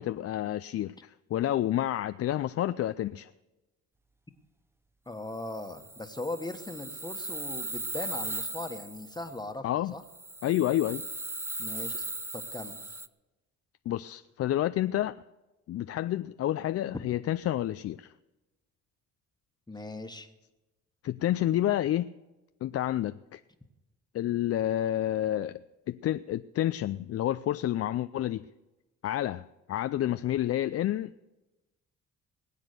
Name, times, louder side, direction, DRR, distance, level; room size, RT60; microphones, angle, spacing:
voice 1, 0.0-3.3 9.6-9.9 10.4-11.0 13.9-15.1 15.7-18.1 21.0-22.1 22.6-23.4 24.1-28.5 29.0-31.2, left 12 dB, 50° left, 12 dB, 0.4 m, -29 dB
voice 2, 5.1-9.6 9.9-10.0 11.6-12.0 12.5-13.0 19.7-20.3, left 2 dB, 15° left, 7 dB, 1.4 m, -39 dB
sound 1, 5.4-9.4 10.0-13.1, right 2 dB, 10° right, 0.5 m, -38 dB
20.0 x 8.1 x 6.7 m, 1.1 s
cardioid pair, 90°, 30 cm